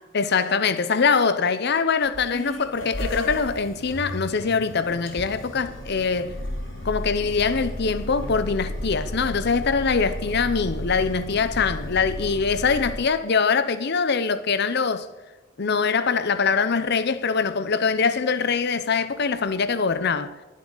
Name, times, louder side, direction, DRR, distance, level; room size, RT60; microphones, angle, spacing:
voice 1, 0.1-6.4 6.8-15.1 15.6-20.3, left 5 dB, 60° left, 0.8 m, -23 dB
sound 1, 2.0-12.9, left 1 dB, 85° left, 3.8 m, -33 dB
22.5 x 7.6 x 4.0 m
head